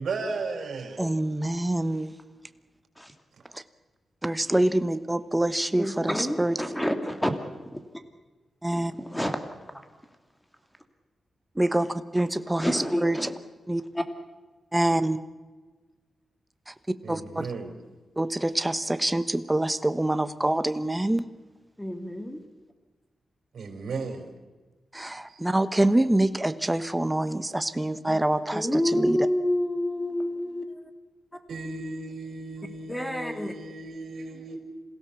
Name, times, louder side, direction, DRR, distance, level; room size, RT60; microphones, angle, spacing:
voice 1, 0.0-1.1 17.0-17.8 23.5-24.3 25.3-25.4 31.5-34.6, right 3 dB, 75° right, 4.8 m, -35 dB
voice 2, 1.0-2.1 3.5-3.6 4.2-6.5 8.6-8.9 11.5-13.3 13.7-13.8 14.7-15.2 16.7-16.8 17.1-17.5 18.2-21.3 24.9-29.2, right 1 dB, 15° right, 1.2 m, -26 dB
voice 3, 5.8-7.8 9.0-9.4 12.6-13.4 13.9-14.0 21.8-22.4 28.1-28.2 28.5-30.8 32.9-33.5, equal, 5° left, 2.7 m, -28 dB
27.5 x 17.0 x 7.1 m
cardioid pair, 85°, 0 cm